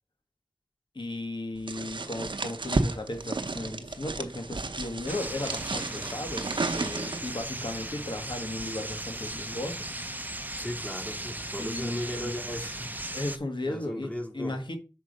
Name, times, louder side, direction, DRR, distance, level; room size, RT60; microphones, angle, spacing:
voice 1, 0.9-9.8 11.5-12.3 13.1-14.8, left 1 dB, 75° left, 1.5 m, -36 dB
sound 1, 1.7-7.4, right 3 dB, 90° right, 0.7 m, -32 dB
sound 2, 5.1-13.4, right 1 dB, 20° right, 0.7 m, -37 dB
voice 2, 10.6-12.9 13.6-14.5, equal, 15° left, 2.3 m, -36 dB
6.0 x 4.6 x 5.3 m
wide cardioid pair, 40°, 8 cm